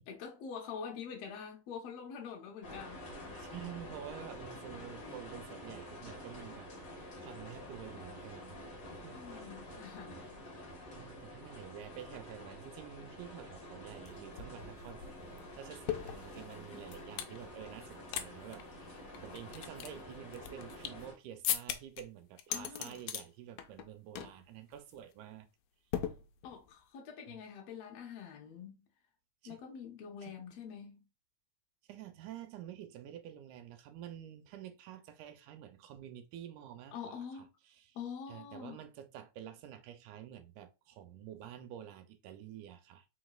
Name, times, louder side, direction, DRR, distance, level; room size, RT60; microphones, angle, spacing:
voice 1, 0.1-3.0 9.1-10.4 16.7-16.8 22.5-23.0 26.4-28.8 29.5-31.0 36.9-37.5 38.0-38.8, left 7 dB, 70° left, 1.7 m, -45 dB
sound 1, 2.6-21.1, left 1 dB, 35° left, 1.5 m, -48 dB
voice 2, 3.3-8.6 9.0-9.2 11.0-15.0 15.6-25.5 27.3-27.4 29.4-29.6 30.2-30.4 31.9-38.0 38.3-43.1, right 10 dB, 85° right, 2.0 m, -49 dB
sound 2, 14.1-14.2 14.4-17.4 17.8-18.3 18.5-18.6 19.1-21.1 21.4-22.0 22.4-23.2 23.6-23.9 24.2-24.4 24.7-25.0 25.9-26.7, left 11 dB, 90° left, 1.5 m, -39 dB
4.7 x 4.1 x 2.3 m
omnidirectional pair, 3.5 m